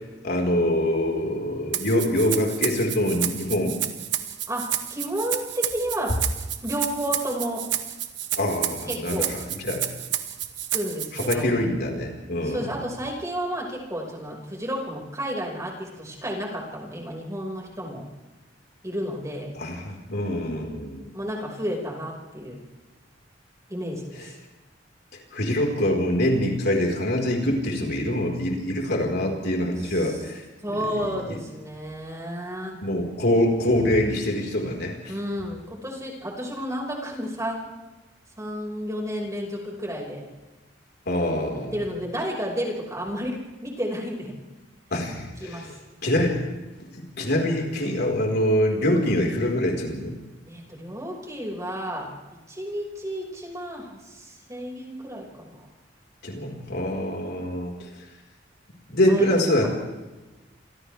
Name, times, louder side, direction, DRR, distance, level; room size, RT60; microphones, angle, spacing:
voice 1, 0.2-3.8 8.4-9.9 11.1-12.7 19.5-21.1 25.3-30.4 31.3-31.4 32.8-35.1 41.1-41.8 44.9-45.7 46.0-46.4 46.9-50.1 56.2-57.9 58.9-59.7, left 1 dB, 60° left, 0 dB, 4.8 m, -24 dB
Rattle (instrument), 1.7-11.3, right 11 dB, 65° right, 1.9 m, -30 dB
voice 2, 4.9-6.1 6.6-7.6 8.9-9.3 10.7-11.5 12.4-18.0 18.8-19.5 21.1-22.6 23.7-24.3 29.8-30.2 30.6-32.8 35.1-37.6 38.4-40.2 41.7-44.3 45.4-45.7 50.5-52.1 52.5-55.7 59.0-59.4, equal, 15° right, -2 dB, 5.7 m, -31 dB
30.0 x 27.5 x 3.5 m, 1.1 s
head